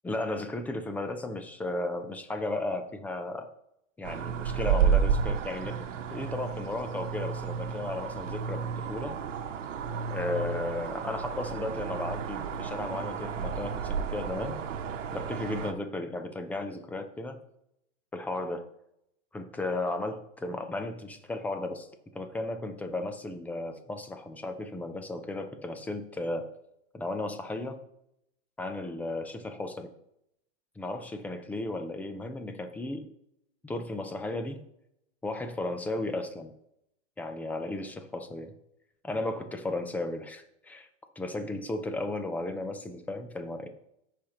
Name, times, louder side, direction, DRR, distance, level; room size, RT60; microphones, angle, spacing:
voice 1, 0.0-3.5 4.0-9.2 10.1-14.6 15.1-17.4 18.1-18.7 19.3-21.9 22.1-26.5 26.9-27.8 28.6-29.9 30.8-33.1 33.6-34.6 35.2-36.5 37.2-38.5 39.0-40.9 41.2-43.7, left 2 dB, 5° left, 7 dB, 0.3 m, -35 dB
sound 1, 4.0-15.7, right 7 dB, 85° right, 1.0 m, -31 dB
14.5 x 5.0 x 2.9 m, 0.78 s
hypercardioid pair, 130°, 36 cm